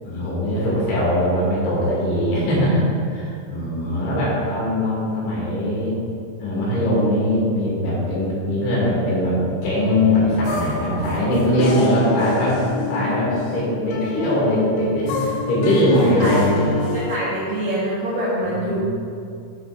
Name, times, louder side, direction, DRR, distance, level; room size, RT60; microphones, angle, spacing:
voice 1, 0.0-5.9 6.4-12.6 12.9-16.6 18.4-18.8, left 1 dB, 65° left, -6 dB, 4.5 m, -21 dB
sound 1, 9.9-17.2, left 4 dB, 80° left, 3.4 m, -27 dB
voice 2, 16.0-16.3 16.9-18.8, equal, 70° right, -8 dB, 2.2 m, -25 dB
11.5 x 9.4 x 2.5 m, 2.4 s
omnidirectional pair, 6.0 m